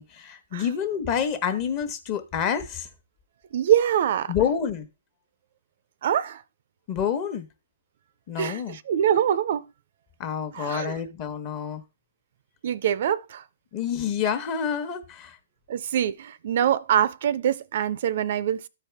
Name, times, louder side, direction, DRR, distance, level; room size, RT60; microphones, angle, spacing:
voice 1, 0.0-2.9 4.3-4.9 6.9-7.5 8.3-8.8 10.2-11.8 13.7-15.4, left 8 dB, 35° left, 1.1 m, -28 dB
voice 2, 3.5-4.3 6.0-6.4 8.4-9.6 10.5-11.0 12.6-13.4 15.7-18.7, right 9 dB, 55° right, 0.4 m, -24 dB
13.0 x 4.7 x 3.4 m
hypercardioid pair, 145°, 0 cm